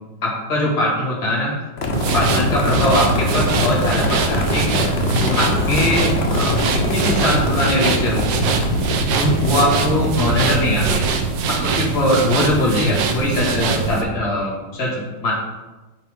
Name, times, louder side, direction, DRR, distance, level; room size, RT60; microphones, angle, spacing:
voice 1, 0.2-1.5 1.9-4.8 5.2-8.3 9.1-11.1 11.5-15.3, left 1 dB, 55° left, -5 dB, 2.4 m, -21 dB
sound 1, 1.8-10.5, left 3 dB, 75° left, 0.5 m, -24 dB
sound 2, 1.9-14.0, right 5 dB, 75° right, 1.4 m, -22 dB
sound 3, 2.5-8.7, left 1 dB, 35° left, 1.2 m, -35 dB
8.9 x 4.4 x 3.5 m, 1.2 s
omnidirectional pair, 2.1 m